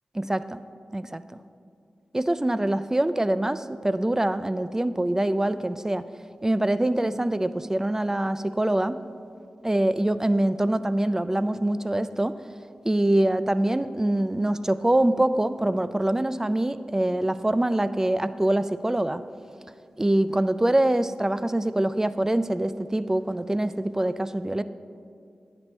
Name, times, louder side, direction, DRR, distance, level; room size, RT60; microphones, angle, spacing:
voice 1, 0.2-0.6 0.9-1.4 2.1-6.0 6.4-9.0 9.6-12.4 12.8-19.2 20.0-24.6, right 1 dB, 15° right, 14 dB, 0.3 m, -24 dB
9.9 x 6.1 x 4.4 m, 2.4 s
cardioid pair, 45°, 3 cm